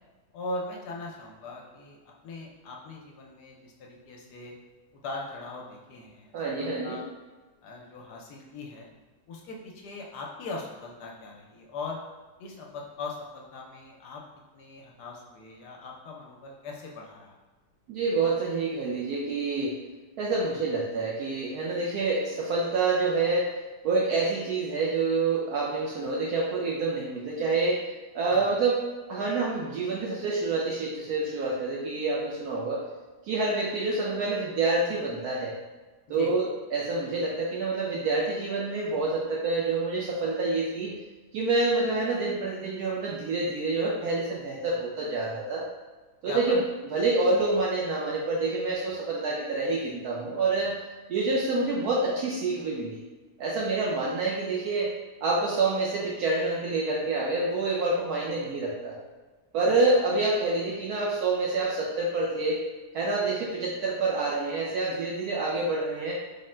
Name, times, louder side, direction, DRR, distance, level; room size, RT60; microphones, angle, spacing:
voice 1, 0.3-4.5 4.9-7.1 7.6-8.9 9.3-12.0 12.4-14.2 14.5-17.4 28.3-28.5 36.1-36.3 46.3-46.6 59.9-60.0, left 3 dB, 80° left, -1 dB, 1.2 m, -40 dB
voice 2, 6.3-7.0 17.9-19.8 20.2-23.6 23.8-27.9 28.1-28.8 29.1-32.8 33.2-35.6 36.1-41.0 41.3-45.6 46.2-50.8 51.1-53.0 53.4-54.9 55.2-59.0 59.5-62.6 62.9-66.1, right 3 dB, 75° right, -3 dB, 1.0 m, -27 dB
3.6 x 2.1 x 4.2 m, 1.2 s
omnidirectional pair, 1.8 m